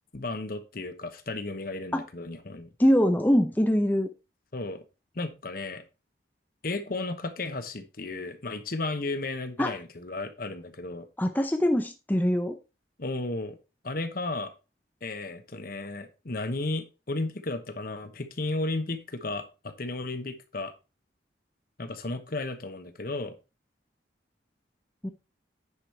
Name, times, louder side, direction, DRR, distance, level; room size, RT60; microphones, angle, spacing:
voice 1, 0.1-2.7 4.5-4.8 5.1-5.8 6.6-11.1 13.0-13.6 13.8-14.5 15.0-20.7 21.8-23.3, left 2 dB, 50° left, 9 dB, 1.0 m, -34 dB
voice 2, 2.8-4.1 9.6-9.7 11.2-12.6 25.0-25.1, equal, 10° left, 6 dB, 0.6 m, -23 dB
9.9 x 5.0 x 4.3 m, 0.29 s
head